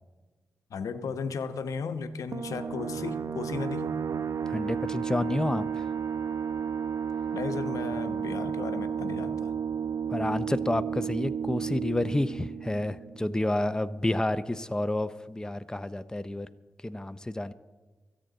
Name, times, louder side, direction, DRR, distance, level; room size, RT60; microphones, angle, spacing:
voice 1, 0.7-3.9 7.3-9.5, left 5 dB, 80° left, 8 dB, 0.9 m, -35 dB
sound 1, 2.3-13.6, right 7 dB, 65° right, 0.7 m, -32 dB
voice 2, 4.5-5.9 10.1-16.5 16.8-17.5, left 1 dB, 10° left, 12 dB, 0.6 m, -29 dB
23.5 x 9.1 x 3.9 m, 1.3 s
cardioid pair, 45°, 6 cm